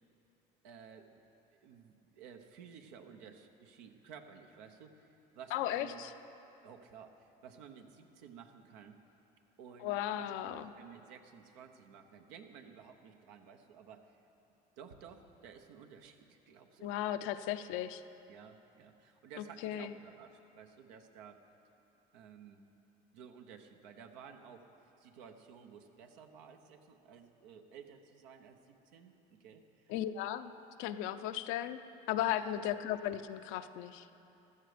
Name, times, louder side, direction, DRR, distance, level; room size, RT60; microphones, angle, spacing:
voice 1, 0.6-1.2 1.5-5.1 5.3-6.0 6.6-9.0 9.6-14.2 14.8-16.9 18.3-21.4 22.1-22.6 23.1-24.7 25.0-30.0 32.3-32.6, right 7 dB, 80° right, 5 dB, 1.1 m, -54 dB
voice 2, 5.5-6.1 9.8-10.7 16.8-18.0 19.6-19.9 29.9-30.5 30.8-31.8 32.1-34.0, left 12 dB, 70° left, 10 dB, 0.7 m, -36 dB
14.5 x 13.0 x 5.1 m, 2.8 s
supercardioid pair, 90°, 21 cm